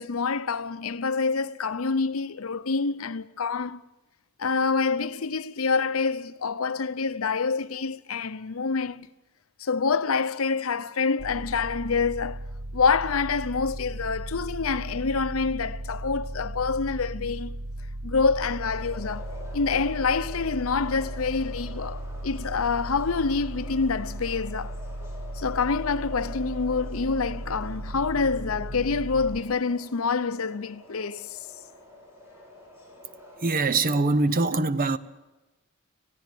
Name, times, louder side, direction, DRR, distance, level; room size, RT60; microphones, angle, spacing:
voice 1, 0.0-3.8 4.4-9.1 9.6-12.4 12.7-17.6 18.0-19.3 19.5-24.8 25.3-31.5, left 4 dB, 70° left, 0.7 m, -27 dB
sound 1, 11.2-29.4, right 1 dB, 75° right, 1.0 m, -36 dB
sound 2, 18.6-34.0, left 2 dB, 10° right, 7.5 m, -47 dB
voice 2, 33.4-35.0, right 3 dB, 40° right, 0.8 m, -23 dB
19.0 x 16.0 x 9.3 m
head